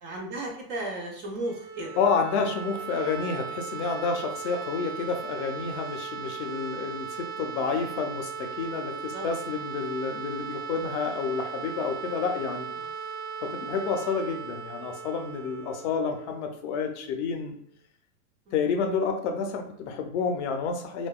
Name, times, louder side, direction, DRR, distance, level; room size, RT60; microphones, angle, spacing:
voice 1, 0.0-1.9 4.2-4.3 9.1-9.3 12.1-12.2 12.8-12.9 18.5-18.6, right 1 dB, 35° right, 0 dB, 0.4 m, -35 dB
sound 1, 1.3-17.1, right 6 dB, 85° right, 0.8 m, -38 dB
voice 2, 2.0-12.7 13.4-17.6 18.5-21.1, left 5 dB, 50° left, 4 dB, 0.5 m, -29 dB
2.6 x 2.2 x 2.3 m, 0.67 s
hypercardioid pair, 130°, 46 cm